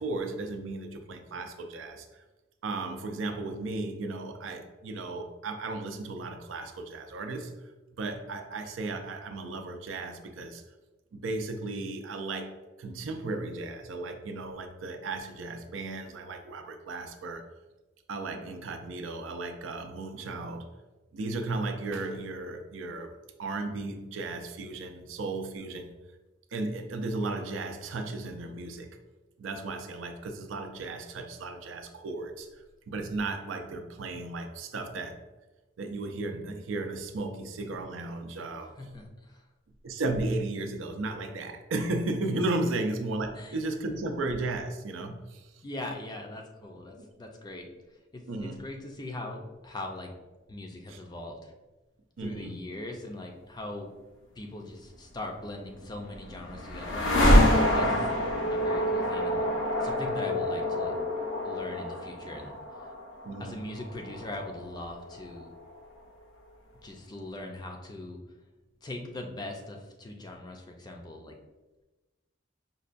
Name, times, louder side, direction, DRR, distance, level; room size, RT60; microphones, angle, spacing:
voice 1, 0.0-2.2 2.6-7.6 8.0-10.6 11.1-17.4 18.1-20.7 21.1-26.0 26.5-28.9 29.4-35.2 35.8-38.8 39.8-45.5 47.0-47.1 48.3-48.6 50.9-51.0 52.2-52.6 57.8-58.0 63.2-63.6, right 2 dB, 85° right, 5 dB, 0.4 m, -35 dB
voice 2, 38.8-39.5 43.4-43.6 45.6-47.7 48.1-50.1 50.5-51.5 52.2-53.9 54.4-58.0 58.5-59.5 59.8-61.0 61.4-62.9 63.4-65.5 66.8-68.2 68.8-71.4, left 2 dB, 20° left, 3 dB, 0.4 m, -41 dB
sound 1, 55.7-65.7, left 1 dB, 80° left, 0.7 m, -27 dB
5.2 x 2.2 x 2.5 m, 1.1 s
head